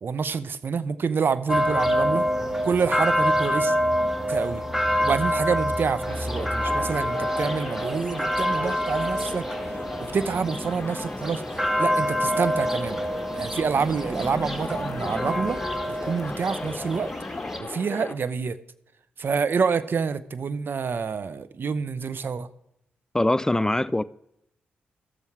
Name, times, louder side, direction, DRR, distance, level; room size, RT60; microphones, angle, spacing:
voice 1, 0.0-2.3 2.6-3.7 4.3-4.6 5.0-11.4 11.8-13.0 13.3-15.6 15.9-17.1 17.6-18.6 19.2-22.5, right 5 dB, 55° right, 0.7 m, -27 dB
sound 1, 1.5-17.6, equal, 10° right, 1.5 m, -27 dB
sound 2, 6.1-18.1, left 3 dB, 35° left, 0.9 m, -37 dB
voice 2, 23.1-24.0, left 1 dB, 15° left, 0.4 m, -22 dB
13.5 x 7.1 x 4.7 m
supercardioid pair, 45°, 4 cm